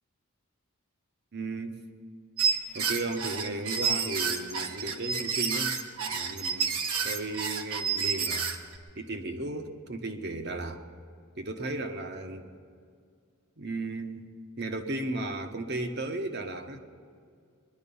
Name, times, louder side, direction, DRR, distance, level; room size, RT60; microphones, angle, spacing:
voice 1, 1.3-1.8 2.7-5.8 6.1-8.5 8.9-10.8 11.4-12.5 13.6-14.2 14.6-16.8, right 2 dB, 50° right, 6 dB, 1.1 m, -35 dB
sound 1, 2.4-8.7, right 6 dB, 75° right, 1.2 m, -29 dB
21.5 x 11.5 x 5.6 m, 2.2 s
head